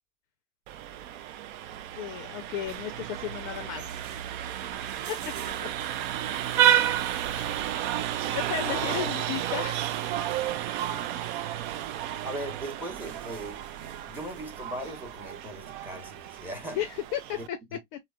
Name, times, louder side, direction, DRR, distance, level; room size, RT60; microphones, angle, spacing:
Vehicle horn car horn honking, 0.7-17.5, right 11 dB, 45° right, 0.4 m, -31 dB
voice 1, 2.0-3.9 5.1-5.7 7.3-7.5 8.3-9.9 16.7-17.6 17.9-18.0, left 11 dB, 40° left, 0.5 m, -34 dB
sound 1, 2.6-15.3, right 5 dB, 90° right, 0.9 m, -51 dB
voice 2, 8.6-9.1 12.2-13.6 14.1-16.8 17.3-17.4 17.7-17.8, right 1 dB, 5° right, 1.0 m, -38 dB
3.3 x 2.1 x 2.4 m
hypercardioid pair, 115°, 36 cm